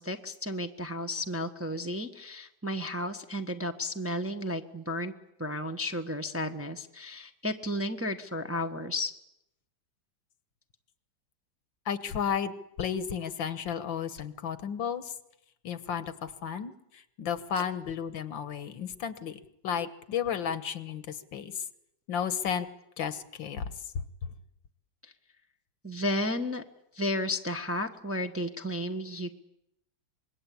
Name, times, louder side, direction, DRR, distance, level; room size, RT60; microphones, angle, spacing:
voice 1, 0.0-5.1 5.4-9.1 17.5-17.6 25.8-26.6 26.9-29.3, left 1 dB, 10° right, 6 dB, 0.9 m, -33 dB
voice 2, 11.9-15.1 15.6-16.7 17.2-21.5 22.1-22.7 23.0-24.0, left 7 dB, 80° left, 13 dB, 2.0 m, -33 dB
25.5 x 21.5 x 8.6 m, 0.81 s
omnidirectional pair, 2.1 m